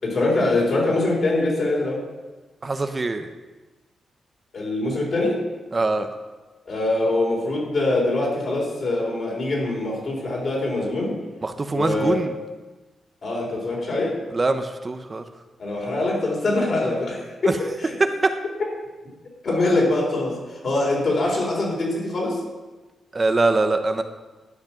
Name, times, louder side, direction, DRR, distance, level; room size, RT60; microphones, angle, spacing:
voice 1, 0.0-2.0 4.5-5.4 6.7-11.2 11.7-12.2 13.2-14.2 15.6-17.9 19.4-22.4, left 2 dB, 55° left, -2 dB, 3.9 m, -23 dB
voice 2, 2.6-3.3 5.7-6.1 11.4-12.3 14.3-15.2 17.5-17.6 18.0-18.3 23.1-24.0, right 3 dB, 30° right, 8 dB, 0.7 m, -22 dB
12.0 x 5.9 x 5.9 m, 1.2 s
cardioid pair, 85°, 0 cm